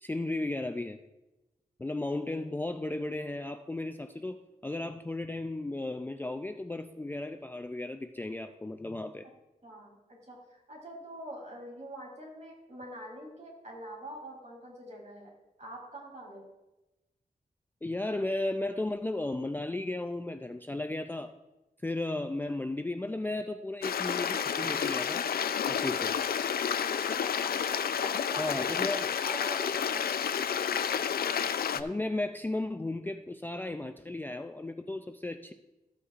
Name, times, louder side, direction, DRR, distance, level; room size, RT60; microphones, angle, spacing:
voice 1, 0.0-1.0 1.8-4.4 4.6-9.2 17.8-21.3 21.8-25.2 25.7-26.2 28.4-29.1 31.7-35.5, left 2 dB, 15° left, 7 dB, 0.3 m, -34 dB
voice 2, 9.6-10.0 10.3-10.4 10.7-15.3 15.6-16.5 26.9-27.6 28.0-28.5 29.2-30.0, right 1 dB, 50° right, -3 dB, 3.4 m, -45 dB
Stream, 23.8-31.8, left 8 dB, 85° left, 0.4 m, -30 dB
14.0 x 8.2 x 2.5 m, 1.0 s
wide cardioid pair, 145°, 15 cm